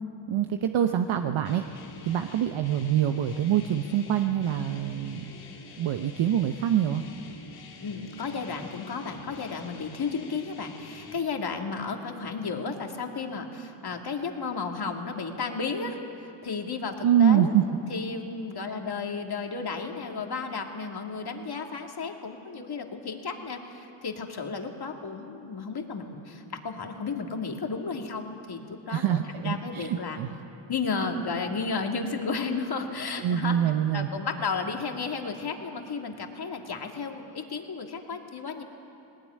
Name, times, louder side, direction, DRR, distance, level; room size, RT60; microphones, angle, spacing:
voice 1, 0.3-1.6 2.1-5.2 5.8-7.0 17.0-17.6 28.9-30.3 33.2-34.1, right 9 dB, 70° right, 6 dB, 1.0 m, -25 dB
sound 1, 1.4-11.2, left 4 dB, 85° left, 2.6 m, -47 dB
voice 2, 7.8-17.5 17.9-30.2 30.7-33.6 33.9-38.6, left 4 dB, 50° left, 3 dB, 2.5 m, -33 dB
19.5 x 18.5 x 9.5 m, 2.8 s
cardioid pair, 65°, 50 cm